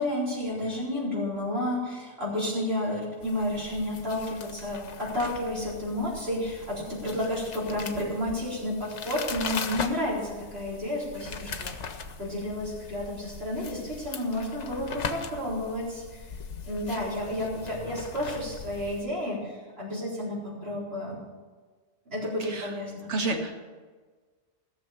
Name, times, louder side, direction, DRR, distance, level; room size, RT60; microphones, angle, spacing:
voice 1, 0.0-11.8 12.2-16.2 16.6-21.2 22.1-23.3, left 1 dB, 60° right, -5 dB, 4.5 m, -31 dB
sound 1, 3.2-19.0, left 5 dB, 80° left, 1.3 m, -40 dB
voice 2, 23.1-23.7, right 3 dB, 80° right, 4 dB, 1.8 m, -30 dB
16.5 x 7.0 x 7.0 m, 1.4 s
omnidirectional pair, 1.2 m